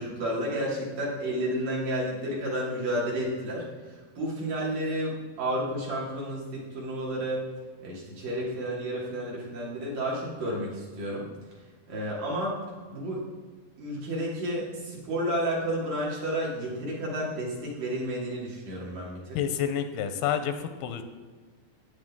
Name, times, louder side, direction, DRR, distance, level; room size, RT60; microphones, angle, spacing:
voice 1, 0.0-7.5 7.8-11.3 11.9-12.6 12.9-13.2 13.8-19.4, right 1 dB, 55° right, -4 dB, 4.0 m, -31 dB
voice 2, 19.3-21.0, left 9 dB, 85° left, 8 dB, 2.6 m, -29 dB
14.5 x 9.5 x 3.7 m, 1.5 s
omnidirectional pair, 4.5 m